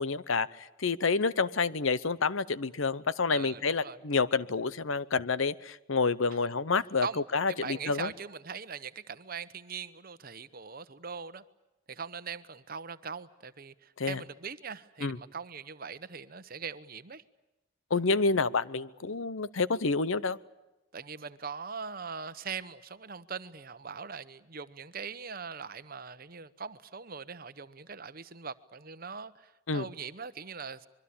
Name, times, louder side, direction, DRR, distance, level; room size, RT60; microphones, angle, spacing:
voice 1, 0.0-7.1 7.3-8.1 14.0-14.2 15.0-15.2 17.9-20.4 29.7-29.9, left 4 dB, 75° left, 0.9 m, -28 dB
voice 2, 3.3-4.0 7.0-7.2 7.5-11.4 11.9-17.2 20.9-30.9, right 5 dB, 45° right, 1.0 m, -41 dB
25.5 x 23.0 x 8.7 m
head